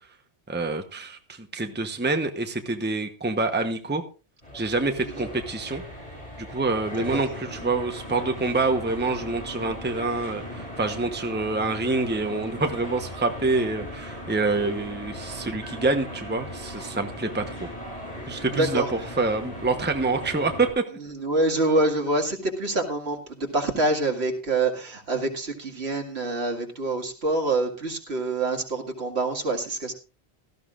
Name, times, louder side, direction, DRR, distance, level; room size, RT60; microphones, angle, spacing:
voice 1, 0.5-4.0 4.5-5.8 6.4-17.6 18.3-20.8, right 3 dB, 10° right, 6 dB, 1.0 m, -26 dB
sound 1, 4.4-20.7, equal, 35° left, 6.0 m, -38 dB
voice 2, 21.1-29.9, right 2 dB, 70° right, 3 dB, 2.3 m, -26 dB
17.5 x 13.0 x 2.5 m, 0.33 s
omnidirectional pair, 1.1 m